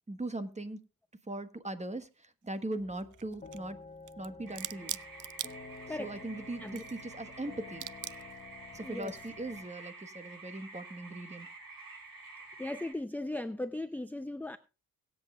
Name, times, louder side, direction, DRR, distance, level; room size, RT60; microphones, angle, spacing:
voice 1, 0.1-0.8 1.3-3.8 4.2-5.0 6.0-7.9 8.7-11.5, right 2 dB, 20° right, 1.3 m, -40 dB
sound 1, 2.0-2.1 2.9-3.7 4.1-6.1 6.5-7.4 7.7-8.4 9.0-9.3, right 12 dB, 65° right, 0.5 m, -42 dB
sound 2, 2.8-9.6, left 4 dB, 25° left, 1.0 m, -50 dB
sound 3, 4.5-12.9, right 3 dB, 80° right, 5.7 m, -50 dB
voice 2, 5.9-6.2 6.6-6.8 8.8-9.2 12.6-14.6, left 1 dB, 5° left, 0.6 m, -38 dB
23.0 x 8.0 x 2.4 m
cardioid pair, 80°, 34 cm